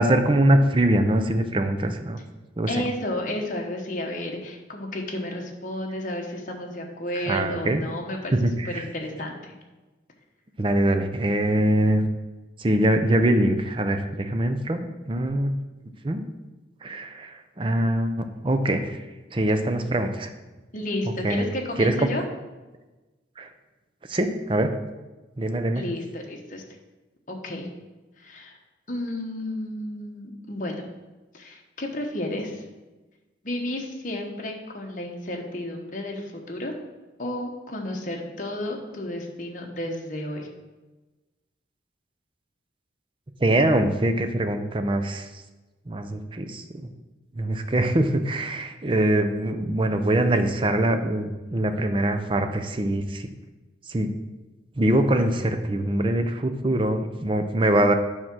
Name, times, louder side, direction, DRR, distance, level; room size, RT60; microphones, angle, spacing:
voice 1, 0.0-2.2 2.6-2.7 7.3-7.8 8.3-8.8 10.6-12.0 12.6-15.6 16.0-16.2 16.8-19.0 19.3-20.3 21.2-21.4 21.8-22.1 23.4-23.5 24.1-24.7 25.4-25.8 43.4-45.3 45.9-46.9 47.4-53.3 53.9-54.1 54.8-57.9, right 1 dB, 25° right, 7 dB, 0.5 m, -23 dB
voice 2, 2.7-8.3 8.6-9.5 20.7-22.2 25.7-26.6 27.3-27.7 28.2-28.6 28.9-30.8 31.3-32.6 33.4-36.7 37.2-40.5, left 1 dB, 45° left, 1 dB, 1.1 m, -32 dB
8.8 x 3.7 x 6.1 m, 1.2 s
head